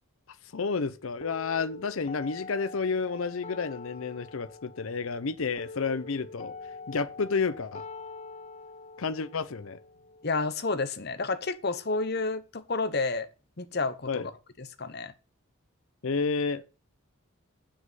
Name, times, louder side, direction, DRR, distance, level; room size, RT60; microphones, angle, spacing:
voice 1, 0.5-6.5 6.9-7.8 9.0-9.8 14.1-14.3 16.0-16.6, left 4 dB, 75° left, 0.6 m, -30 dB
sound 1, 1.2-11.2, left 3 dB, 30° left, 0.5 m, -45 dB
voice 2, 10.2-13.3 13.6-14.2 14.8-15.1, left 3 dB, 50° left, 0.9 m, -30 dB
7.6 x 6.4 x 5.6 m
head